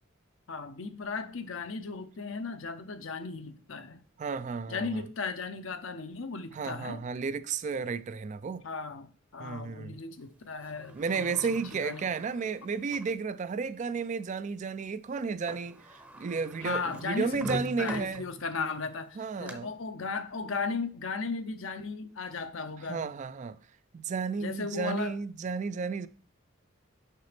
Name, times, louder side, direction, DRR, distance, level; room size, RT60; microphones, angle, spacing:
voice 1, 0.5-4.0 4.7-7.0 8.6-12.1 16.6-23.1 24.4-25.1, left 4 dB, 70° left, 0.8 m, -36 dB
voice 2, 4.2-5.0 6.5-8.6 9.4-10.0 10.9-18.2 19.2-19.7 22.9-23.6 23.9-26.1, right 5 dB, 35° right, 0.3 m, -33 dB
Sliding door, 10.6-13.2 13.8-13.9 15.2-15.3 15.5-18.6 19.1-19.5, right 1 dB, 10° right, 0.7 m, -44 dB
6.7 x 5.9 x 3.3 m
head